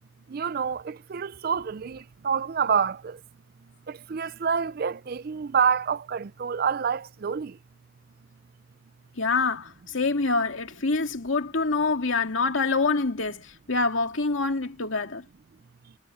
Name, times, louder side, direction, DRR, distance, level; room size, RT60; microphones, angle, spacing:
voice 1, 0.3-3.2 3.9-7.5, right 6 dB, 50° right, 0.4 m, -27 dB
voice 2, 9.2-15.2, left 3 dB, 85° left, 2.3 m, -26 dB
head